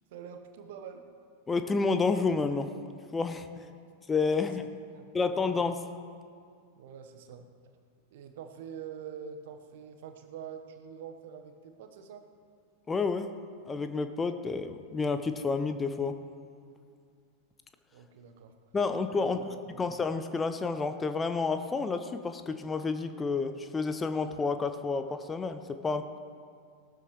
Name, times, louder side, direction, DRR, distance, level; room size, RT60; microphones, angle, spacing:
voice 1, 0.1-1.1 3.5-3.8 4.3-4.5 4.9-5.5 6.8-7.4 8.1-12.2 17.9-18.5 19.2-19.8, right 7 dB, 55° right, 7 dB, 1.1 m, -45 dB
voice 2, 1.5-2.7 3.1-3.6 4.1-4.7 5.1-5.8 12.9-13.3 13.7-16.2 18.7-19.4 19.8-26.2, left 4 dB, 15° left, 9 dB, 0.6 m, -30 dB
19.0 x 13.0 x 3.1 m, 2.2 s
figure-of-eight pair, 90°, 0 cm